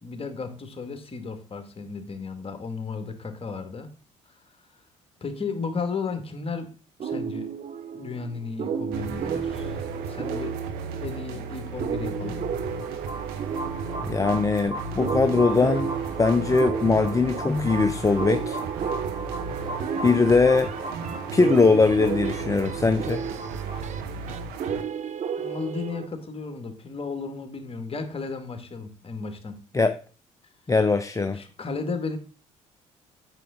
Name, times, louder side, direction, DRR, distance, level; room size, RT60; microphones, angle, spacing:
voice 1, 0.0-3.9 4.3-4.8 5.2-6.7 7.0-7.5 7.9-10.5 11.0-12.4 25.4-29.6 31.3-32.2, left 4 dB, 35° left, 2.2 m, -34 dB
sound 1, 7.0-26.1, right 7 dB, 45° right, 0.9 m, -33 dB
sound 2, 8.9-24.8, right 4 dB, 75° right, 1.1 m, -35 dB
sound 3, 12.4-23.8, right 2 dB, 30° right, 2.7 m, -37 dB
voice 2, 14.1-15.9 16.2-18.6 20.0-20.7 21.3-23.2 29.7-30.0 30.7-31.4, left 4 dB, 20° left, 0.6 m, -21 dB
9.0 x 6.8 x 3.9 m
hypercardioid pair, 50°, 16 cm